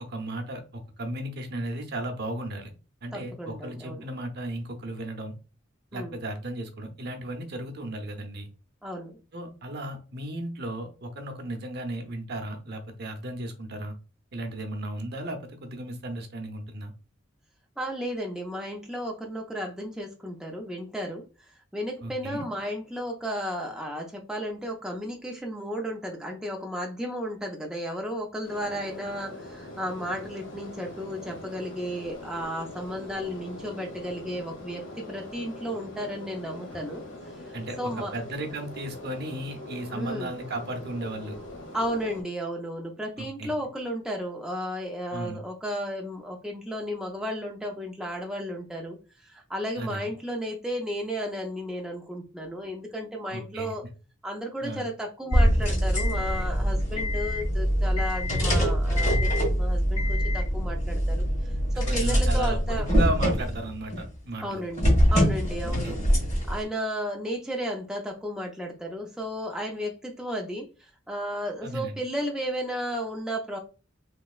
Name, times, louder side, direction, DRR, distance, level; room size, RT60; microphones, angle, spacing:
voice 1, 0.1-2.7 3.0-5.3 5.9-8.5 9.3-13.9 14.3-16.9 22.0-22.4 36.7-36.8 37.5-41.4 43.2-43.5 45.1-45.4 49.8-50.1 53.3-53.7 54.6-54.8 61.8-64.6 65.6-66.0 71.6-72.0, right 1 dB, 55° right, 5 dB, 0.7 m, -35 dB
voice 2, 3.1-4.0 5.9-6.2 8.8-9.2 17.8-21.2 21.7-37.0 37.5-38.1 39.9-40.3 41.7-49.0 49.2-53.8 54.2-61.2 61.8-62.9 64.4-64.8 65.1-66.0 66.5-70.7 71.1-73.6, equal, 5° right, 0 dB, 0.5 m, -33 dB
sound 1, 28.4-42.2, left 1 dB, 75° left, 1.3 m, -42 dB
sound 2, 55.3-64.1 64.8-66.6, equal, 35° left, 1.6 m, -24 dB
3.4 x 3.0 x 2.3 m, 0.34 s
head